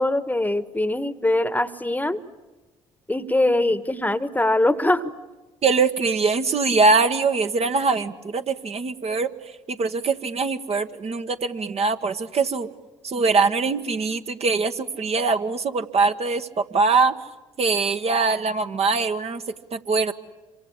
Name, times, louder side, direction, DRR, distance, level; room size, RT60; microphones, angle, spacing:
voice 1, 0.0-2.2 3.1-5.1, left 1 dB, 10° left, 14 dB, 1.3 m, -22 dB
voice 2, 5.6-9.3 9.7-12.7 13.0-17.1 17.6-19.4 19.7-20.1, right 4 dB, 40° right, 7 dB, 1.4 m, -22 dB
26.5 x 25.0 x 8.6 m, 1.2 s
hypercardioid pair, 55°, 15 cm